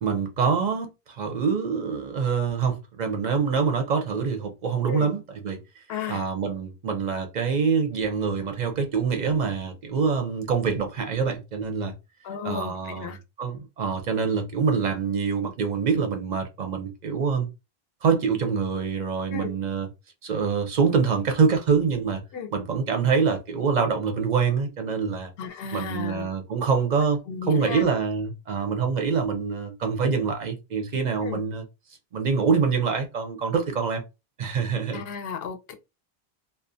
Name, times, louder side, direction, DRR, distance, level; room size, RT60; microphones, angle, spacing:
voice 1, 0.0-5.6 6.1-11.9 12.4-13.1 13.4-17.5 18.0-19.9 20.2-22.2 22.5-25.3 25.7-27.2 27.5-31.6 32.1-34.0 34.4-35.0, right 5 dB, 55° right, 0.5 m, -25 dB
voice 2, 5.9-6.2 12.2-13.2 19.3-19.5 22.3-22.5 25.4-26.3 27.3-27.8 31.2-31.4 34.9-35.7, left 7 dB, 75° left, 0.8 m, -34 dB
2.4 x 2.1 x 2.5 m
omnidirectional pair, 1.0 m